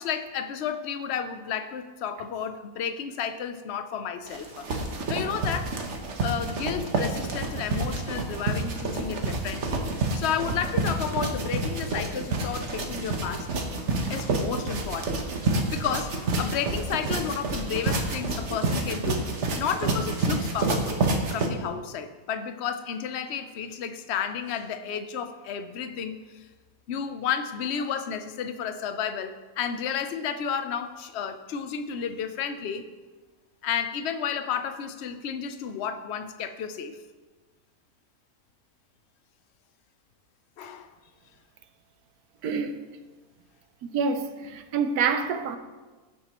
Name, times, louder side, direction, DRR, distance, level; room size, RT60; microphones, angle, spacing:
voice 1, 0.0-4.7 5.1-5.7 6.2-9.8 10.1-13.5 14.1-21.0 21.3-26.5 26.9-32.8 33.6-37.0 40.6-40.9, left 7 dB, 55° left, 0.8 m, -32 dB
sound 1, 4.3-21.5, right 3 dB, 55° right, 1.3 m, -29 dB
voice 2, 42.4-42.8 43.8-45.6, right 5 dB, 85° right, 1.2 m, -27 dB
16.0 x 7.4 x 3.0 m
omnidirectional pair, 1.6 m